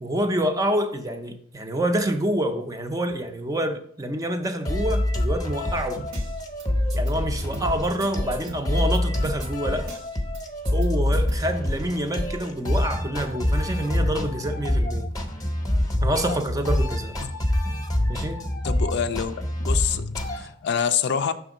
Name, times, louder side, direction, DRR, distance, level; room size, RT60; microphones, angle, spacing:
voice 1, 0.0-6.0 6.9-9.9 10.7-15.1 16.0-17.2 18.1-18.4, right 1 dB, 15° right, 0.5 m, -27 dB
sound 1, 4.7-20.4, left 1 dB, 20° left, 0.8 m, -26 dB
sound 2, 6.0-6.6 6.9-7.1 7.4-9.0 9.2-10.4 10.6-10.9 11.1-11.3, right 2 dB, 85° right, 1.3 m, -38 dB
voice 2, 18.6-19.3 19.6-21.3, left 7 dB, 60° left, 0.4 m, -26 dB
6.0 x 3.5 x 4.9 m
head